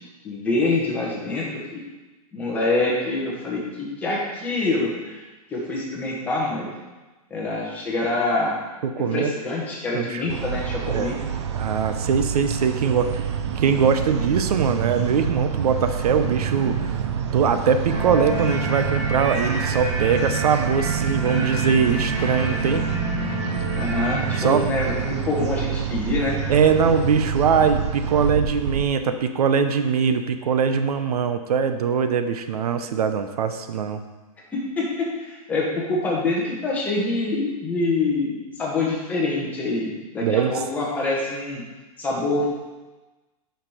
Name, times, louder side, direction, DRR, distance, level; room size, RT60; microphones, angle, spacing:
voice 1, 0.2-1.9 2.3-5.2 5.5-6.7 7.3-8.5 9.0-11.3 23.7-26.4 34.5-41.6 42.0-42.4, left 2 dB, 10° left, -4 dB, 1.1 m, -25 dB
voice 2, 8.8-9.3 9.9-10.2 10.9-11.1 11.6-13.1 13.6-16.9 17.3-22.8 24.3-24.6 26.5-34.0 40.2-40.5, right 6 dB, 80° right, 9 dB, 0.7 m, -22 dB
sound 1, 10.3-28.8, right 7 dB, 45° right, 0.6 m, -27 dB
sound 2, 17.9-24.6, right 1 dB, 15° right, 0.8 m, -29 dB
7.4 x 5.7 x 4.9 m, 1.2 s
supercardioid pair, 180°, 20 cm